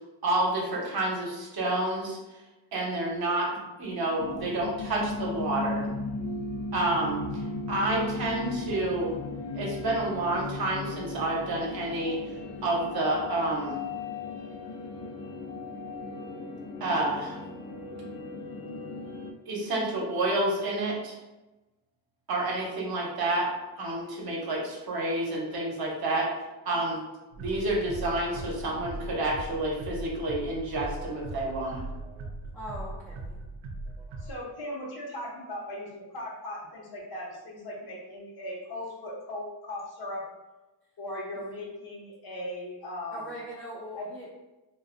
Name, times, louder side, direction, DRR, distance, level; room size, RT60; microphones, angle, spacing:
voice 1, 0.2-2.2 2.7-5.9 6.7-7.2 7.7-9.1 9.5-12.2 12.6-13.8 16.8-17.4 19.5-21.1 22.3-23.5 23.8-26.3 26.6-27.0 27.4-31.8, right 2 dB, 50° right, -2 dB, 0.8 m, -29 dB
sound 1, 4.2-19.3, left 3 dB, 70° left, 0.6 m, -36 dB
sound 2, 27.3-34.3, right 2 dB, 85° right, 0.6 m, -39 dB
voice 2, 32.5-33.4 43.1-44.3, equal, 5° left, -8 dB, 0.3 m, -41 dB
voice 3, 34.2-40.2 41.0-43.4 44.0-44.1, left 1 dB, 55° left, -3 dB, 0.9 m, -38 dB
2.5 x 2.3 x 2.4 m, 1.1 s
cardioid pair, 105°, 46 cm